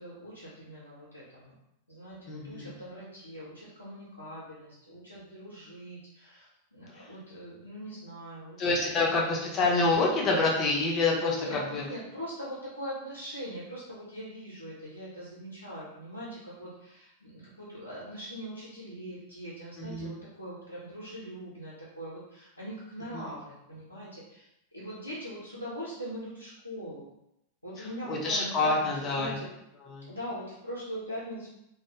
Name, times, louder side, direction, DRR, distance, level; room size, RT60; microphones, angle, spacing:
voice 1, 0.0-1.5 1.9-8.7 9.0-9.2 11.1-24.4 24.7-27.1 27.6-29.5 30.0-31.5, equal, 85° left, -9 dB, 0.6 m, -41 dB
voice 2, 2.3-2.7 7.0-7.1 8.6-11.8 19.8-20.2 23.1-23.3 27.8-29.4 29.8-30.1, left 3 dB, 30° left, -2 dB, 0.5 m, -27 dB
2.3 x 2.0 x 2.7 m, 0.82 s
figure-of-eight pair, 90°, 0 cm